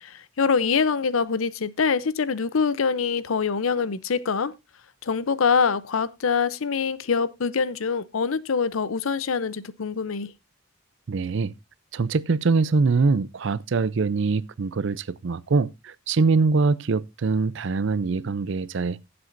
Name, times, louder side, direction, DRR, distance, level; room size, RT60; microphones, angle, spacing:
voice 1, 0.0-4.5 5.0-10.3, left 5 dB, 75° left, 0.6 m, -24 dB
voice 2, 11.1-11.5 11.9-19.0, right 4 dB, 60° right, 0.5 m, -23 dB
16.0 x 7.7 x 2.6 m
head